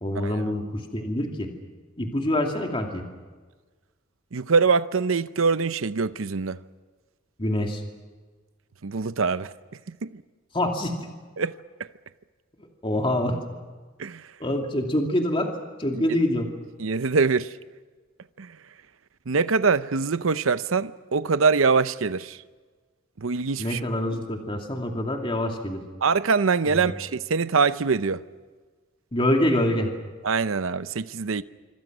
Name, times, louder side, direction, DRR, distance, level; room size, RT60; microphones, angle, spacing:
voice 1, 0.0-1.5 2.0-3.0 7.4-7.8 10.5-11.1 12.8-13.4 14.4-15.5 15.8-16.5 23.6-25.8 26.7-26.9 29.1-29.9, left 1 dB, 25° left, 2.5 m, -25 dB
voice 2, 4.3-6.6 8.8-9.5 9.9-10.2 11.4-11.5 11.8-11.9 14.0-14.3 15.9-16.2 16.8-17.5 18.4-18.6 19.3-22.4 23.2-23.8 26.0-28.2 30.2-31.4, right 4 dB, 80° right, 0.7 m, -24 dB
26.5 x 25.5 x 6.2 m
head